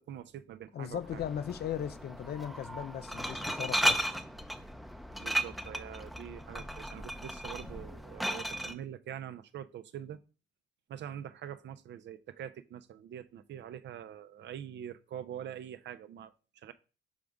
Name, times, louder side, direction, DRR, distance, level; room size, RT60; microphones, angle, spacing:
voice 1, 0.0-1.2 5.2-10.2 10.9-16.7, right 10 dB, 65° right, 0.5 m, -44 dB
voice 2, 0.7-4.0, left 9 dB, 55° left, 0.5 m, -37 dB
Glass, 0.9-8.7, equal, ahead, 0.6 m, -35 dB
6.0 x 5.1 x 3.5 m
cardioid pair, 90°, 20 cm